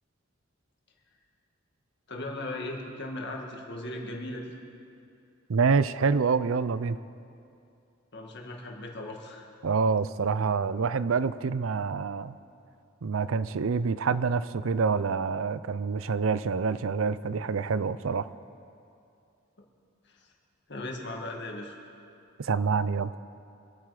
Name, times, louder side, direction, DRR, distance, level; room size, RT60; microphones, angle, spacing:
voice 1, 2.1-4.6 8.1-9.5 20.1-20.3 20.7-21.7, left 1 dB, 60° left, 1 dB, 2.0 m, -37 dB
voice 2, 5.5-7.0 9.6-12.4 13.0-18.3 22.4-23.1, right 5 dB, 80° right, 15 dB, 0.5 m, -27 dB
25.5 x 9.1 x 4.9 m, 2.5 s
head